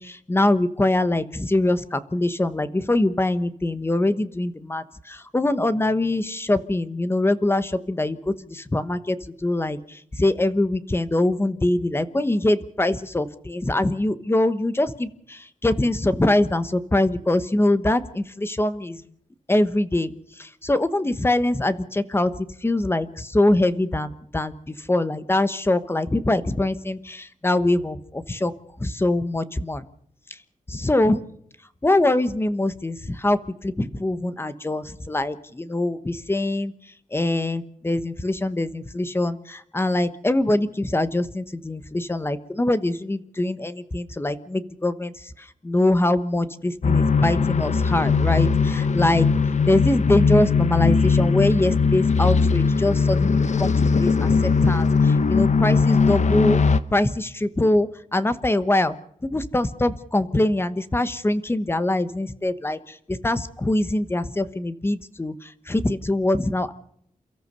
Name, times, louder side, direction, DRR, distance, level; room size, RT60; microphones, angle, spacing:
voice 1, 0.0-19.0 19.5-22.3 22.6-28.5 28.8-29.8 30.7-31.2 31.8-36.7 37.1-49.3 49.7-56.6 56.9-59.0 59.2-66.7, left 1 dB, 15° left, 12 dB, 1.1 m, -23 dB
sound 1, 46.8-56.8, left 4 dB, 55° left, 1.1 m, -19 dB
29.0 x 14.0 x 6.8 m, 0.66 s
wide cardioid pair, 160°, 14 cm